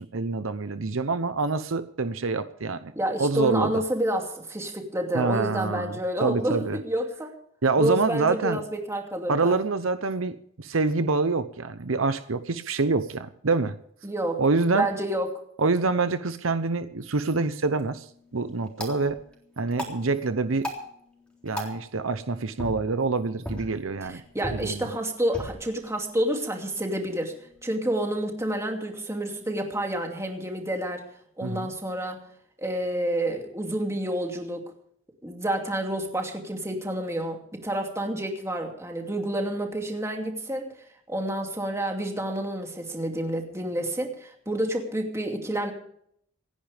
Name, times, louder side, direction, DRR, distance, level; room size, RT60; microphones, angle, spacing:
voice 1, 0.0-2.9 3.2-3.7 5.1-6.0 6.2-6.8 7.6-8.6 9.3-13.8 14.4-14.9 15.6-18.1 18.3-19.2 19.6-20.7 21.4-24.2 24.5-24.9 31.4-31.7, right 3 dB, 70° right, 11 dB, 0.8 m, -26 dB
voice 2, 3.0-7.3 7.8-9.5 14.0-14.4 14.7-15.4 24.1-31.0 31.4-32.2 32.6-34.6 35.2-40.7 41.1-45.7, right 1 dB, 15° right, 2 dB, 2.7 m, -29 dB
sound 1, 17.6-27.7, left 1 dB, 5° left, 3.7 m, -41 dB
27.0 x 10.5 x 3.5 m, 0.68 s
head